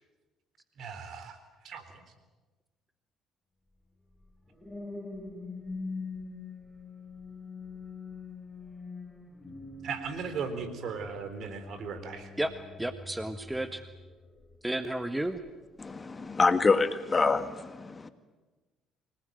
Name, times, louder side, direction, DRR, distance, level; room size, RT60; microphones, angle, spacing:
voice 1, 0.8-1.4 1.6-2.1 9.8-12.3, right 5 dB, 60° right, 10 dB, 3.8 m, -37 dB
sound 1, 4.2-14.7 15.3-15.6, left 3 dB, 10° left, 5.3 m, -44 dB
voice 2, 12.8-13.9 14.6-15.4, right 1 dB, 10° right, 10 dB, 1.6 m, -32 dB
voice 3, 15.8-18.1, left 4 dB, 30° left, 10 dB, 1.9 m, -26 dB
25.5 x 19.5 x 9.2 m, 1.2 s
hypercardioid pair, 55°, 0 cm